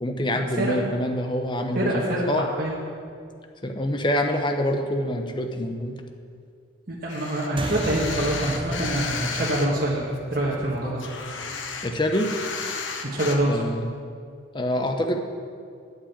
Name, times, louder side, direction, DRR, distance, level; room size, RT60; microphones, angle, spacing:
voice 1, 0.0-2.5 3.6-6.0 11.8-12.3 13.5-13.9 14.5-15.2, left 1 dB, 25° left, 4 dB, 0.8 m, -26 dB
voice 2, 1.7-2.8 6.9-11.0 13.0-13.6, right 1 dB, 45° right, -5 dB, 1.5 m, -25 dB
sound 1, 7.1-9.7 10.1-13.4, left 5 dB, 75° left, 1.1 m, -33 dB
sound 2, 7.6-12.4, right 1 dB, 25° right, 0.6 m, -35 dB
8.8 x 7.6 x 8.6 m, 2.2 s
head